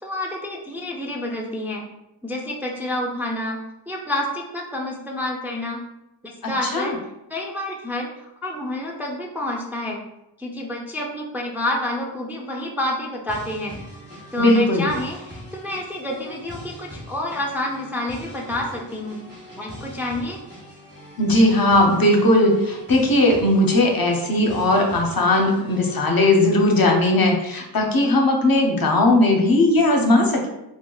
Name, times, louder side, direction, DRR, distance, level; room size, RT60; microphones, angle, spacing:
voice 1, 0.0-1.8 2.2-3.6 3.9-5.8 6.5-7.0 7.3-10.0 10.4-13.8 14.3-19.2 19.6-20.4, left 1 dB, 5° right, -1 dB, 0.4 m, -28 dB
voice 2, 6.4-7.0 14.4-14.9 21.2-30.5, left 1 dB, 55° left, 1 dB, 0.6 m, -18 dB
sound 1, 13.3-26.1, equal, 25° right, 1.3 m, -41 dB
4.5 x 2.1 x 2.2 m, 0.91 s
wide cardioid pair, 70°, 44 cm